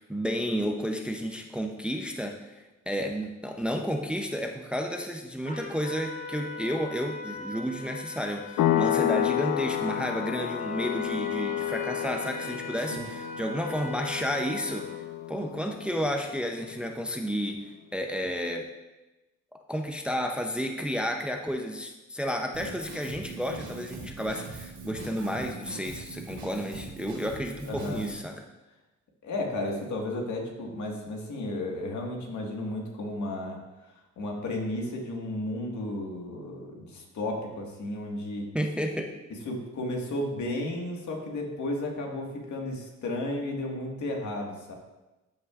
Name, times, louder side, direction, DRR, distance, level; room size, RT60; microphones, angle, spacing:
voice 1, 0.0-14.9 15.3-18.7 19.5-28.4 38.5-39.1, equal, 5° right, 3 dB, 0.6 m, -31 dB
Trumpet, 5.4-15.0, left 2 dB, 25° left, 1.1 m, -40 dB
sound 1, 8.6-16.9, left 12 dB, 85° left, 0.5 m, -31 dB
Drum kit, 22.5-28.1, right 3 dB, 70° right, 2.7 m, -41 dB
voice 2, 27.7-28.0 29.2-33.6 34.2-38.4 39.5-44.7, left 1 dB, 70° left, 0 dB, 1.7 m, -33 dB
13.0 x 5.7 x 2.5 m, 1.1 s
cardioid pair, 105°, 30 cm